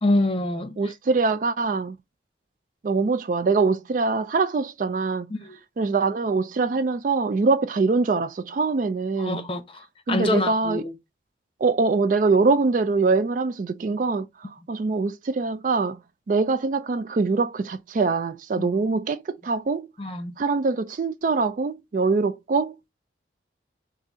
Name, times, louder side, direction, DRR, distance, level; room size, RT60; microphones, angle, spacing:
voice 1, 0.0-0.9 5.3-5.6 9.2-10.9 18.6-18.7 20.0-20.3, left 1 dB, 30° left, 0.7 m, -26 dB
voice 2, 0.8-2.0 2.8-5.3 5.8-9.5 10.1-10.8 11.6-14.3 14.7-16.0 16.3-19.9 20.4-22.8, right 4 dB, 45° right, 0.3 m, -23 dB
4.0 x 2.6 x 4.8 m
head